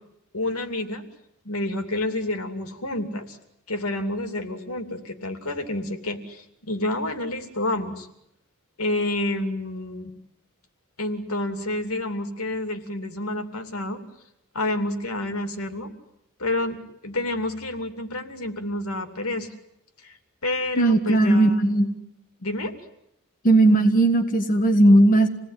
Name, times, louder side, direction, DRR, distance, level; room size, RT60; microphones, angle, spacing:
voice 1, 0.3-1.0 1.4-3.4 3.7-8.1 8.8-10.1 11.0-14.0 14.5-15.9 16.4-16.8 17.0-19.5 20.0-20.1 20.4-21.7 22.4-22.7, left 1 dB, 80° left, 7 dB, 2.8 m, -29 dB
voice 2, 20.8-21.9 23.4-25.3, right 1 dB, 40° left, 4 dB, 1.6 m, -17 dB
27.5 x 19.0 x 9.8 m, 0.81 s
head